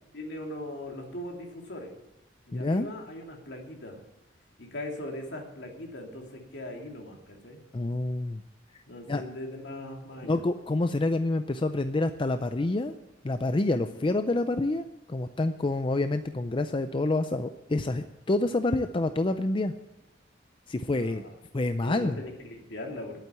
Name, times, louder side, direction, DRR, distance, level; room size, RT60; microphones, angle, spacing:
voice 1, 0.1-1.9 2.5-4.0 4.6-7.6 8.9-10.4 13.8-14.2 20.9-21.3 21.8-23.2, left 1 dB, 70° left, 1 dB, 2.7 m, -40 dB
voice 2, 2.5-2.9 7.7-8.4 9.1-9.2 10.3-12.9 13.2-19.7 20.7-21.2 21.5-22.2, left 2 dB, 25° left, 9 dB, 0.4 m, -27 dB
11.0 x 9.1 x 8.4 m, 0.90 s
head